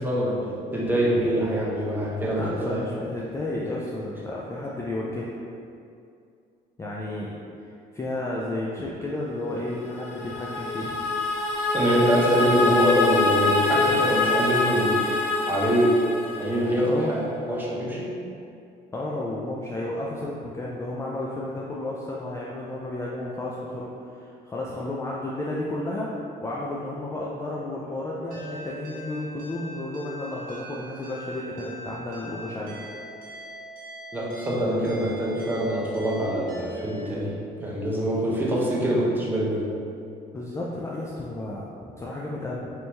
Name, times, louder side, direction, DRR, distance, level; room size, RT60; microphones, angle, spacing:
voice 1, 0.0-2.8 11.7-15.0 15.5-16.0 16.4-18.2 34.1-39.7, equal, 10° right, -6 dB, 0.7 m, -24 dB
voice 2, 2.3-5.3 6.8-11.0 16.8-17.2 18.9-26.1 26.4-32.8 40.3-42.7, left 1 dB, 15° left, -5 dB, 0.3 m, -32 dB
sound 1, 9.8-16.9, left 3 dB, 75° left, 1.1 m, -25 dB
sound 2, 28.3-37.0, equal, 55° right, 0.8 m, -42 dB
3.0 x 2.6 x 3.3 m, 2.5 s
cardioid pair, 110°, 17 cm